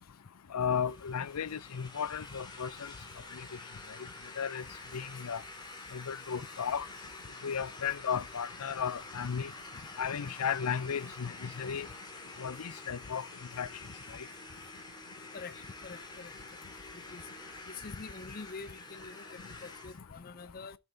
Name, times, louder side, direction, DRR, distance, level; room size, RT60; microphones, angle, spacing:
voice 1, 0.5-2.9 3.3-3.5 4.4-4.6 4.9-5.4 5.9-6.9 7.4-9.5 10.0-11.9 12.4-13.3 13.6-13.7 14.1-14.3, left 7 dB, 90° left, 0.6 m, -34 dB
sound 1, 0.7-20.0, left 3 dB, 20° left, 2.6 m, -48 dB
voice 2, 15.8-16.3 17.1-17.2 17.7-20.8, left 4 dB, 40° left, 0.5 m, -45 dB
13.0 x 6.9 x 3.9 m
head